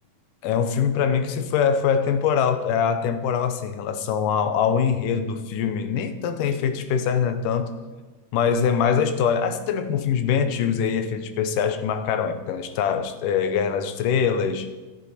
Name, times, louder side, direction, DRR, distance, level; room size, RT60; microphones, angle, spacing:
voice 1, 0.4-7.7 8.3-14.7, left 7 dB, 85° left, 2.5 m, -23 dB
14.0 x 10.5 x 4.3 m
omnidirectional pair, 3.6 m